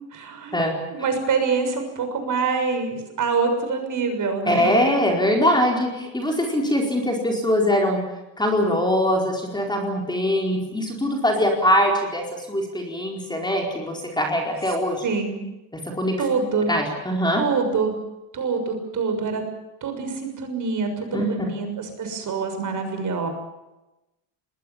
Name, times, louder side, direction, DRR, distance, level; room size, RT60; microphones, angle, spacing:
voice 1, 0.1-0.6 0.9-4.7 15.0-15.4 16.2-16.7 17.3-18.0 18.3-19.4 19.8-23.3, right 4 dB, 40° right, 6 dB, 6.6 m, -25 dB
voice 2, 4.4-8.0 8.4-15.0 15.7-16.1 16.7-17.4 21.1-21.3, equal, 10° left, 1 dB, 4.5 m, -22 dB
27.5 x 21.0 x 7.3 m, 0.96 s
cardioid pair, 145°, 49 cm